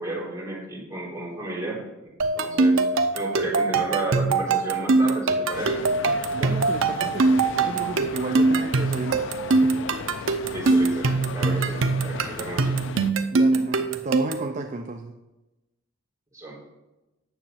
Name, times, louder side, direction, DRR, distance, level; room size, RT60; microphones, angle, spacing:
voice 1, 0.0-1.8 2.3-2.8 3.1-5.8 10.5-12.9 16.3-16.6, right 2 dB, 15° right, -6 dB, 3.7 m, -32 dB
sound 1, 2.2-14.5, right 3 dB, 90° right, 0.7 m, -22 dB
sound 2, 5.5-13.1, left 5 dB, 65° left, 0.5 m, -36 dB
voice 2, 6.3-9.8 10.2-10.4 13.3-15.1, right 2 dB, 40° right, 5 dB, 0.6 m, -33 dB
9.2 x 7.2 x 5.7 m, 1.0 s
head